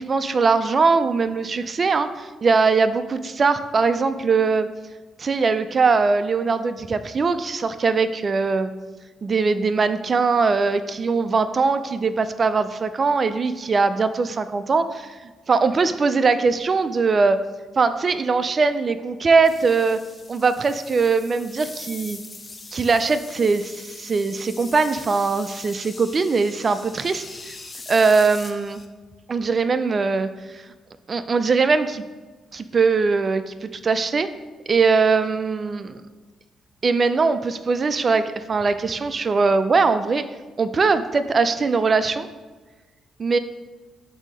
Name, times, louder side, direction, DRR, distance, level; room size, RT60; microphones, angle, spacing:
voice 1, 0.0-4.7 5.2-8.7 9.2-17.4 17.8-20.0 20.3-22.2 22.7-27.6 27.9-28.8 29.3-30.6 31.1-32.0 32.5-34.3 34.7-36.0 36.8-40.3 40.6-42.3 43.2-43.4, right 4 dB, 40° right, 11 dB, 0.3 m, -21 dB
sound 1, 19.4-28.8, left 3 dB, 30° left, 0.6 m, -41 dB
7.1 x 2.8 x 5.2 m, 1.3 s
cardioid pair, 90°, 0 cm